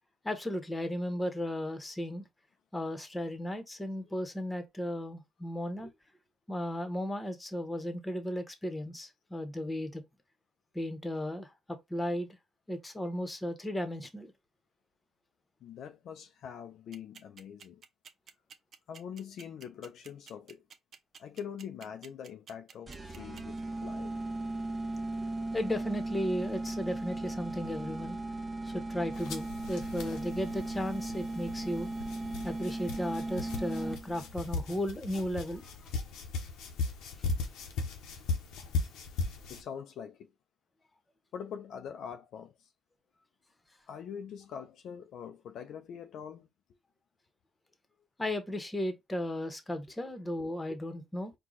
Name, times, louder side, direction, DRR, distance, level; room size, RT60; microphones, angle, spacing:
voice 1, 0.2-2.3 2.7-5.9 6.5-10.0 10.7-12.3 12.7-14.3 25.5-28.2 28.6-31.9 32.4-35.7 48.2-51.3, left 1 dB, 15° left, 1.1 m, -35 dB
voice 2, 15.6-17.8 18.9-20.6 21.2-24.2 39.5-40.3 41.3-42.7 43.9-46.5, left 8 dB, 75° left, 0.5 m, -44 dB
sound 1, 16.9-23.6, right 7 dB, 55° right, 0.7 m, -51 dB
sound 2, 22.9-34.3, right 2 dB, 20° right, 0.9 m, -37 dB
sound 3, 29.1-39.6, left 3 dB, 90° left, 0.9 m, -38 dB
4.6 x 2.4 x 3.9 m
cardioid pair, 90°, 0 cm